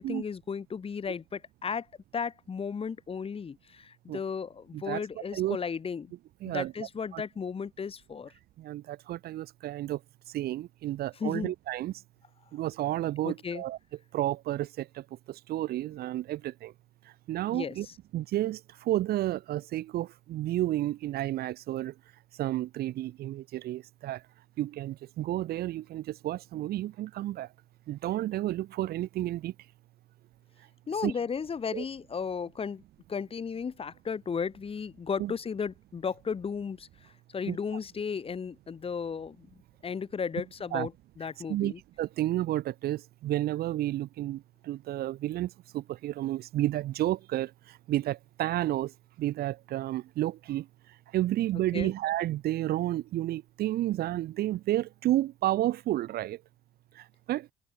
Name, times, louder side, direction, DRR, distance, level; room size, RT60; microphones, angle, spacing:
voice 1, 0.0-1.9 2.1-6.1 6.4-8.3 11.2-11.5 13.2-13.6 17.5-17.9 30.9-32.8 33.1-39.5 39.8-40.9 41.2-41.8 51.7-51.9, left 6 dB, 35° left, 4.0 m, -35 dB
voice 2, 6.4-7.2 8.6-10.0 10.3-11.9 12.5-13.8 14.1-16.7 17.3-17.9 18.1-21.9 22.4-24.2 24.6-27.5 27.9-29.5 31.0-31.1 31.7-31.8 35.2-35.3 37.5-37.6 40.7-40.9 41.5-48.9 49.2-50.7 51.1-56.4 57.0-57.5, right 14 dB, 65° right, 1.0 m, -31 dB
open air
cardioid pair, 110°, 17 cm